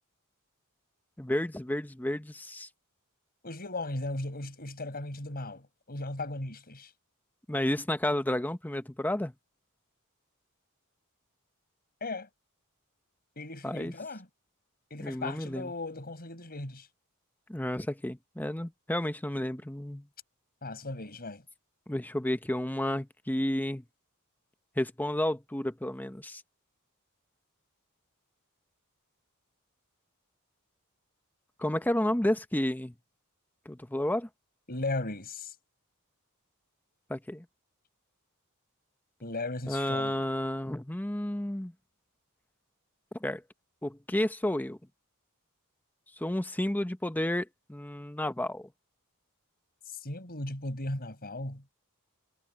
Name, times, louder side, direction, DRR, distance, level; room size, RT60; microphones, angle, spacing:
voice 1, 1.2-2.7 7.5-9.3 13.6-13.9 15.0-15.7 17.5-20.1 21.9-23.8 24.8-26.4 31.6-32.9 33.7-34.3 37.1-37.4 39.7-41.7 43.2-43.4 43.8-44.8 46.2-48.7, left 1 dB, 10° left, 0.8 m, -31 dB
voice 2, 3.4-6.9 12.0-12.3 13.4-14.3 14.9-16.9 20.6-21.4 34.7-35.5 39.2-40.2 49.9-51.6, left 2 dB, 45° left, 5.3 m, -37 dB
head